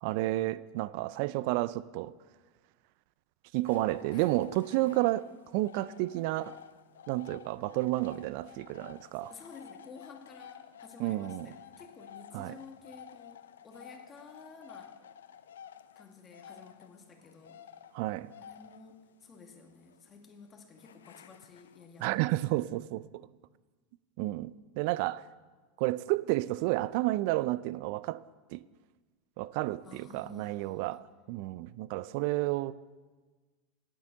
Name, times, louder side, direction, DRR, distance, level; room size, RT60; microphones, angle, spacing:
voice 1, 0.0-2.1 3.5-6.6 7.1-9.3 11.0-11.5 12.3-12.6 17.9-18.3 22.0-23.3 24.2-25.2 25.8-28.2 28.5-28.6 29.4-31.0 31.3-32.7, right 18 dB, 60° right, 0.3 m, -31 dB
sound 1, 3.7-22.2, left 9 dB, 80° left, 0.4 m, -52 dB
voice 2, 9.3-15.0 16.0-17.6 18.4-22.5 29.8-31.0, left 4 dB, 30° left, 1.8 m, -52 dB
9.3 x 8.3 x 7.3 m
hypercardioid pair, 90°, 0 cm